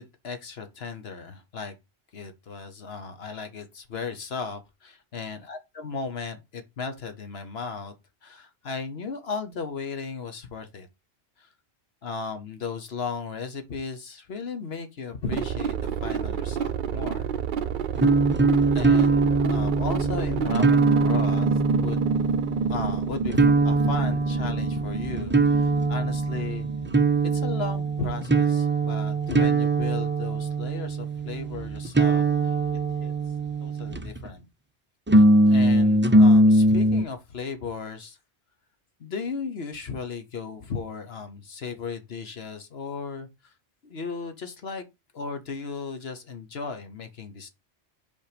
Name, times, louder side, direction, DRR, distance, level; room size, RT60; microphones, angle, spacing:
voice 1, 0.0-1.8 2.1-7.9 8.2-10.9 11.4-11.5 12.0-17.3 18.7-22.4 22.7-26.7 27.3-32.5 33.0-33.1 33.6-34.5 35.2-38.2 39.0-43.5 43.8-44.8 45.1-47.5, left 5 dB, 65° left, 1.3 m, -36 dB
sound 1, 15.3-28.5, right 6 dB, 55° right, 0.6 m, -29 dB
sound 2, 18.0-34.3 35.1-37.0, right 2 dB, 15° right, 0.4 m, -22 dB
5.5 x 4.7 x 5.0 m
omnidirectional pair, 1.1 m